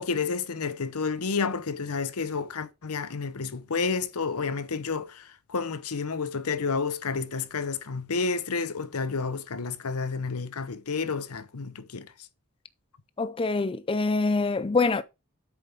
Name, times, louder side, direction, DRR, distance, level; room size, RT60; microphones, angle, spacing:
voice 1, 0.0-12.1, left 4 dB, 85° left, 0.9 m, -30 dB
voice 2, 13.2-15.0, left 3 dB, 25° left, 0.4 m, -25 dB
8.3 x 6.9 x 3.5 m
head